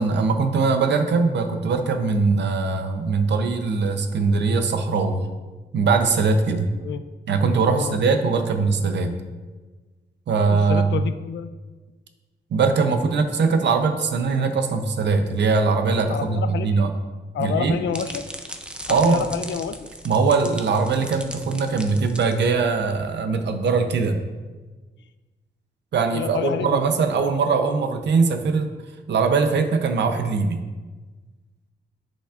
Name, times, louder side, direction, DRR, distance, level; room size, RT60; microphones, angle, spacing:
voice 1, 0.0-5.3 5.7-6.7 7.3-9.1 10.3-11.0 12.5-16.9 17.4-17.8 18.9-19.3 20.0-24.2 25.9-28.7 29.1-30.6, right 4 dB, 75° right, 7 dB, 0.6 m, -21 dB
voice 2, 10.5-11.5 16.1-16.8 17.3-18.2 18.9-19.9 26.1-26.8, left 7 dB, 85° left, 11 dB, 0.4 m, -28 dB
sound 1, 17.4-22.8, right 1 dB, 5° right, 0.4 m, -38 dB
10.0 x 5.2 x 2.4 m, 1.3 s
wide cardioid pair, 155°, 18 cm